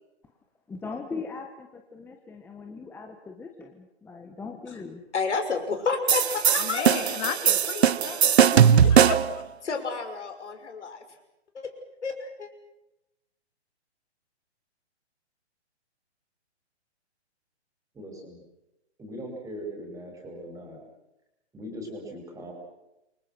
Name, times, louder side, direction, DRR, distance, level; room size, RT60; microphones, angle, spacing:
voice 1, 0.7-5.0, left 4 dB, 5° left, 3 dB, 1.2 m, -40 dB
voice 2, 5.1-7.1 7.4-8.0 8.2-8.6 9.6-11.0 11.5-11.7 12.0-12.5, left 4 dB, 85° left, 5 dB, 6.3 m, -31 dB
sound 1, 6.1-9.4, right 8 dB, 70° right, 1.2 m, -20 dB
voice 3, 6.6-9.4, left 9 dB, 35° left, 7 dB, 3.3 m, -34 dB
voice 4, 17.9-18.4 19.0-20.8 21.5-22.5, equal, 10° right, 2 dB, 6.0 m, -40 dB
28.0 x 24.5 x 6.2 m, 0.92 s
hypercardioid pair, 150°, 34 cm